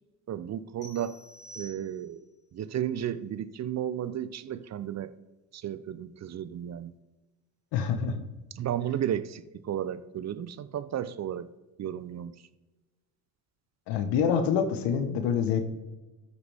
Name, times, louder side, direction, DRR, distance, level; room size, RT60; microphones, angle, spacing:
voice 1, 0.3-1.2 1.6-2.3 2.5-5.1 5.5-6.9 8.5-11.5 11.8-12.4, right 10 dB, 40° right, 0.6 m, -33 dB
sound 1, 0.8-2.3, right 1 dB, 15° left, 3.5 m, -49 dB
voice 2, 7.7-8.2 13.9-15.7, left 7 dB, 65° left, 1.3 m, -26 dB
13.5 x 8.2 x 3.5 m
hypercardioid pair, 75°, 44 cm